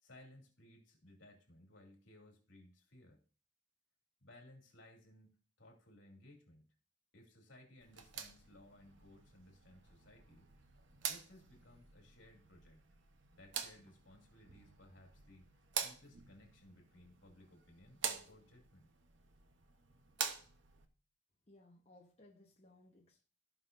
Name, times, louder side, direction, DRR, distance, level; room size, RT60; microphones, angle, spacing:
voice 1, 0.0-3.2 4.2-6.8 7.1-10.4 11.1-12.9 13.4-18.9, left 1 dB, 70° left, 2.7 m, -61 dB
sound 1, 7.8-20.9, right 7 dB, 70° right, 0.9 m, -46 dB
voice 2, 21.5-23.2, left 1 dB, 35° left, 1.1 m, -63 dB
15.5 x 5.7 x 2.6 m
head